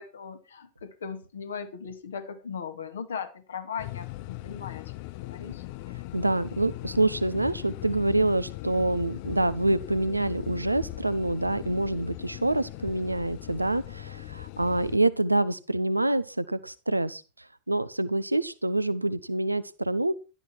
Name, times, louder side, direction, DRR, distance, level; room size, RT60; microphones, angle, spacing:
voice 1, 0.0-5.6, left 6 dB, 65° left, 2.3 m, -38 dB
sound 1, 3.8-15.0, left 18 dB, 45° left, 0.6 m, -39 dB
voice 2, 6.1-17.2 17.7-20.1, right 2 dB, 85° right, 0.8 m, -26 dB
12.5 x 12.0 x 4.5 m
figure-of-eight pair, 90°, 0 cm